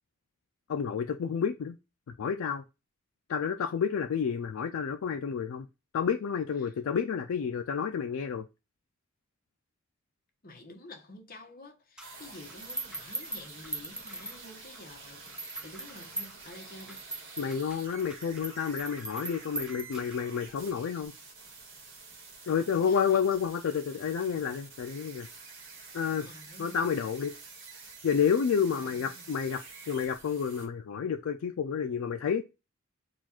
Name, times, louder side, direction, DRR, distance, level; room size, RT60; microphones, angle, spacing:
voice 1, 0.7-1.8 2.2-2.6 3.3-5.7 5.9-8.4 17.4-21.1 22.5-25.3 25.9-26.3 26.6-27.3 28.0-32.4, left 7 dB, 80° left, 0.4 m, -30 dB
voice 2, 10.4-17.0 22.7-23.2 26.2-26.8 28.7-29.2, left 2 dB, 45° left, 1.1 m, -49 dB
sound 1, 12.0-14.8 15.3-20.4, right 2 dB, 5° right, 0.4 m, -41 dB
sound 2, 12.0-30.7, right 4 dB, 65° right, 1.4 m, -49 dB
4.2 x 2.4 x 4.3 m
head